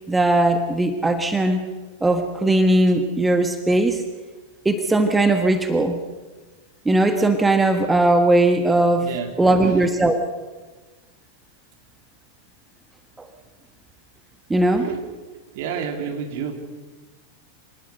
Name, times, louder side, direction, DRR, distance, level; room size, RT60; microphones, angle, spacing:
voice 1, 0.1-1.7 2.0-4.0 4.6-6.0 6.8-9.1 9.4-10.2 13.2-13.3 14.5-14.8, right 2 dB, 10° right, 7 dB, 1.4 m, -19 dB
voice 2, 9.0-9.9 14.7-15.0 15.5-16.5, right 7 dB, 50° right, 4 dB, 3.3 m, -30 dB
26.0 x 19.5 x 6.6 m, 1.3 s
figure-of-eight pair, 90°, 0 cm